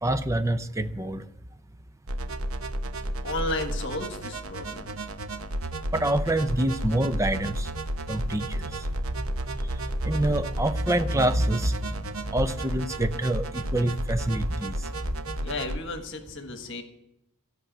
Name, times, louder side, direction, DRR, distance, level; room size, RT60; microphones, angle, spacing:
voice 1, 0.0-1.2 5.9-7.7 8.1-8.5 10.0-11.7 12.3-14.8, right 1 dB, 15° right, 10 dB, 0.6 m, -26 dB
sound 1, 2.1-15.8, right 1 dB, 80° right, 0.9 m, -32 dB
voice 2, 3.2-5.0 15.4-16.8, left 2 dB, 60° left, 6 dB, 1.4 m, -33 dB
14.5 x 6.9 x 9.1 m, 0.84 s
head